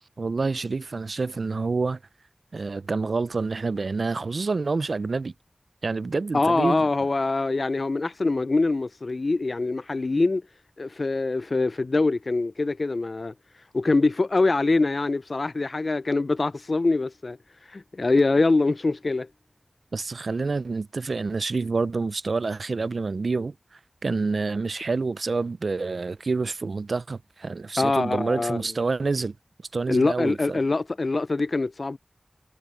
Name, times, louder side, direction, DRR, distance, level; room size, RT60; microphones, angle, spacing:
voice 1, 0.2-2.0 2.5-5.3 5.8-6.9 19.9-23.5 24.0-29.3 29.7-30.6, right 3 dB, 85° right, 0.3 m, -27 dB
voice 2, 6.3-10.4 10.8-13.3 13.7-17.4 17.7-19.3 27.8-28.6 29.9-32.0, left 3 dB, 65° left, 0.3 m, -24 dB
wide cardioid pair, 55°, 0 cm